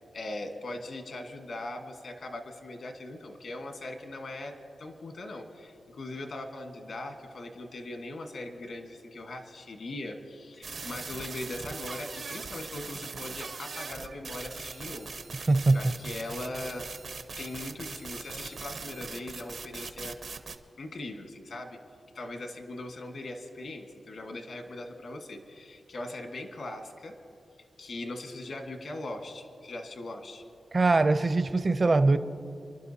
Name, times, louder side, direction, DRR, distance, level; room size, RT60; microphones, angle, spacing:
voice 1, 0.1-15.1 15.7-16.9 17.4-20.2 20.8-21.8 22.1-27.2 27.8-30.4, left 2 dB, 75° left, 4 dB, 1.5 m, -40 dB
sound 1, 10.6-20.6, right 4 dB, 70° right, 0.8 m, -40 dB
voice 2, 15.5-15.9 30.7-32.2, right 3 dB, 40° right, 11 dB, 0.6 m, -22 dB
29.5 x 11.5 x 2.8 m, 2.4 s
cardioid pair, 75°, 0 cm